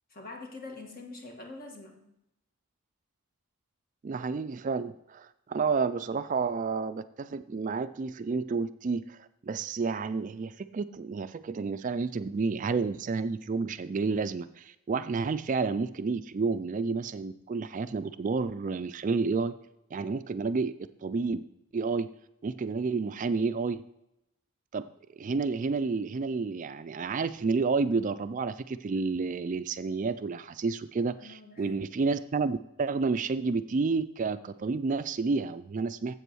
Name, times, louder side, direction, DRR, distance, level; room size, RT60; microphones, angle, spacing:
voice 1, 0.1-2.1 31.2-31.8, left 3 dB, 40° left, 2 dB, 1.7 m, -45 dB
voice 2, 4.0-19.5 19.9-20.7 21.0-21.4 21.7-22.1 22.4-23.8 24.7-24.9 25.1-36.1, right 4 dB, 35° right, 12 dB, 0.3 m, -30 dB
8.1 x 7.7 x 6.2 m, 0.85 s
head